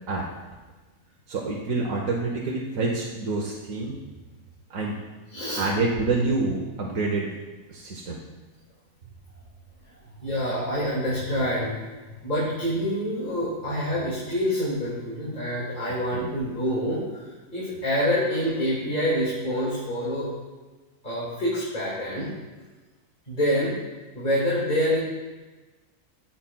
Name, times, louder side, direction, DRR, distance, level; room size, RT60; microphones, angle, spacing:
voice 1, 1.3-4.0 4.7-5.0 5.5-7.3 7.7-8.2 16.1-16.3, right 3 dB, 85° right, -2 dB, 1.3 m, -27 dB
voice 2, 5.3-5.7 10.2-11.8 12.2-20.3 21.0-22.3 23.3-23.8 24.1-25.0, equal, 35° left, -9 dB, 2.2 m, -26 dB
15.0 x 5.8 x 2.3 m, 1.2 s
omnidirectional pair, 1.4 m